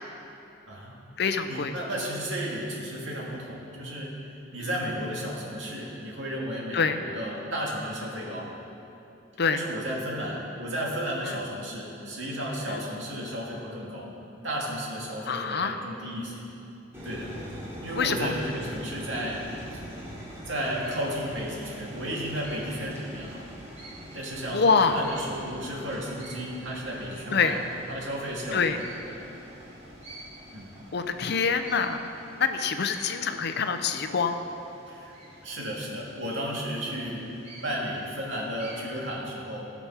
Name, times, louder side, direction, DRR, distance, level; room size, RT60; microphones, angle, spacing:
voice 1, 0.7-1.0 1.5-4.2 4.5-8.5 9.5-14.1 14.4-16.5 17.0-17.3 17.8-19.4 19.7-19.8 20.5-23.4 24.1-29.2 30.5-30.7 34.9-35.1 35.4-39.7, equal, 75° right, -3 dB, 2.3 m, -33 dB
voice 2, 1.2-1.7 6.7-7.0 9.4-9.6 11.3-11.4 12.7-12.8 15.3-15.8 17.9-18.3 24.5-25.0 27.3-27.6 28.5-28.8 30.9-32.0 32.4-34.4, left 5 dB, 60° left, 8 dB, 0.6 m, -25 dB
sound 1, 16.9-31.8, equal, 15° right, 2.8 m, -44 dB
sound 2, 20.6-39.1, right 1 dB, 35° right, 2.9 m, -50 dB
16.5 x 6.1 x 5.7 m, 2.9 s
head